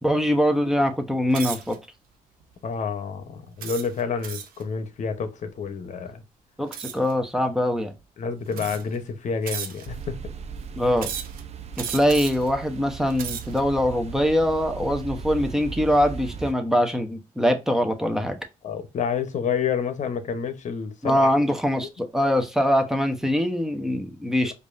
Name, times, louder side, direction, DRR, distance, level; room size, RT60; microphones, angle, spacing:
voice 1, 0.0-1.8 6.6-7.9 10.8-11.1 11.8-18.4 21.0-24.5, equal, 5° right, 0.9 m, -23 dB
sound 1, 1.3-1.8 2.4-2.7 3.6-4.6 6.7-7.1 8.0-8.1 8.5-9.0 9.5-10.0 11.0-11.4 11.8-12.5 13.0-13.6, right 8 dB, 90° right, 0.7 m, -35 dB
voice 2, 2.6-6.2 8.2-10.1 18.6-21.3, left 6 dB, 55° left, 0.9 m, -29 dB
sound 2, 9.9-16.5, right 5 dB, 50° right, 0.6 m, -37 dB
4.6 x 2.7 x 2.5 m
cardioid pair, 80°, 14 cm